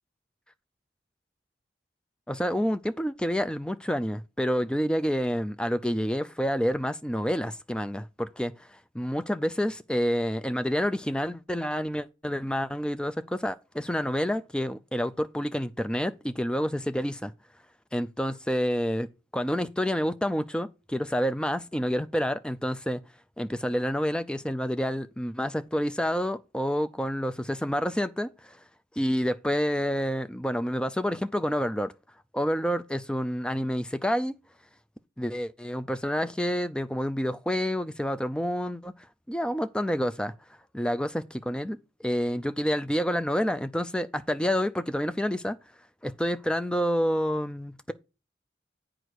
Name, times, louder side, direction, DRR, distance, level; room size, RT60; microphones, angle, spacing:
voice 1, 2.3-17.3 17.9-19.1 19.3-23.0 23.4-28.6 29.0-31.9 32.3-34.3 35.2-38.9 39.3-40.3 40.7-41.8 42.0-45.6 46.0-47.9, equal, 5° left, 0.3 m, -28 dB
8.1 x 5.0 x 4.7 m
head